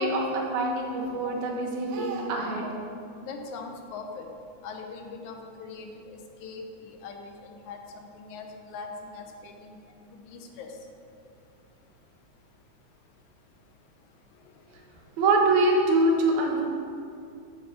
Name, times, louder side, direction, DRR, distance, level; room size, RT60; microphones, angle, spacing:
voice 1, 0.0-2.7 15.2-16.6, right 2 dB, 85° right, -1 dB, 2.5 m, -24 dB
voice 2, 3.2-4.3 4.6-9.8 10.1-10.8 14.4-14.6, left 4 dB, 85° left, 4 dB, 2.2 m, -41 dB
7.8 x 6.1 x 4.8 m, 2.5 s
omnidirectional pair, 3.3 m